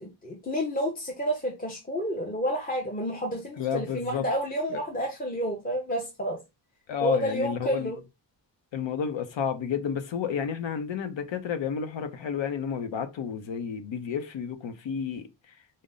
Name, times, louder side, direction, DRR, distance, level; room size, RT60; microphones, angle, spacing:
voice 1, 0.0-6.4 7.0-8.0, equal, 20° left, 0.7 m, -30 dB
voice 2, 3.6-4.2 4.7-4.8 6.9-7.9 8.7-15.3, left 7 dB, 80° left, 0.8 m, -31 dB
5.1 x 2.1 x 3.8 m
wide cardioid pair, 175°, 44 cm